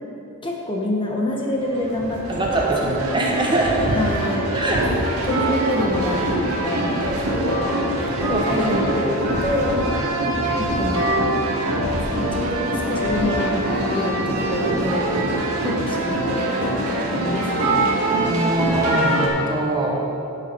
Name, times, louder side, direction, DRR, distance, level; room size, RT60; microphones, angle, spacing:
voice 1, 0.4-2.7 3.0-3.2 3.8-4.5 5.2-9.1 9.4-9.8 10.6-11.1 11.9-13.6 13.9-15.2 15.6-17.9, left 1 dB, 25° left, -1 dB, 1.2 m, -27 dB
sound 1, 1.6-19.3, right 1 dB, 85° right, 1.8 m, -23 dB
voice 2, 2.4-3.9 4.5-4.8 8.3-8.5 18.2-20.0, right 2 dB, 20° right, -2 dB, 1.3 m, -22 dB
11.5 x 8.1 x 4.6 m, 2.8 s
head